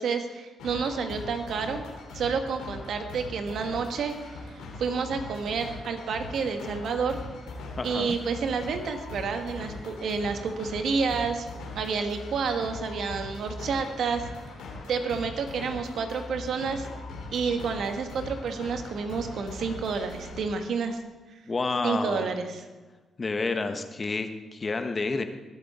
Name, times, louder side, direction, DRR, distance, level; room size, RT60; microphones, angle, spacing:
voice 1, 0.0-1.8 2.1-4.5 4.8-7.2 7.8-11.4 11.7-14.3 14.9-16.9 17.3-21.0 21.8-22.6 24.1-24.2, right 5 dB, 70° right, 6 dB, 1.4 m, -29 dB
sound 1, 0.6-20.4, left 2 dB, 85° left, 2.9 m, -41 dB
voice 2, 7.8-8.2 21.5-22.3 23.2-25.2, left 3 dB, 40° left, 8 dB, 1.3 m, -29 dB
20.5 x 7.6 x 4.4 m, 1.3 s
supercardioid pair, 55°, 0 cm